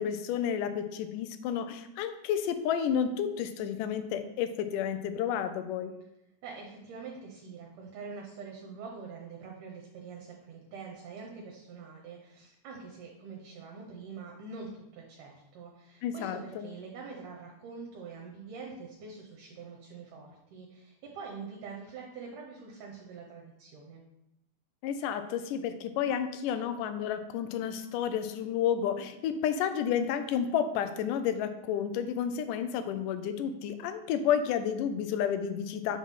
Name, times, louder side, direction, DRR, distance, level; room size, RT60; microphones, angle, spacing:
voice 1, 0.0-5.9 16.0-16.7 24.8-36.0, left 8 dB, 80° left, 9 dB, 2.0 m, -31 dB
voice 2, 6.4-24.0, right 4 dB, 75° right, -1 dB, 2.3 m, -45 dB
6.0 x 5.7 x 3.7 m, 0.86 s
omnidirectional pair, 3.9 m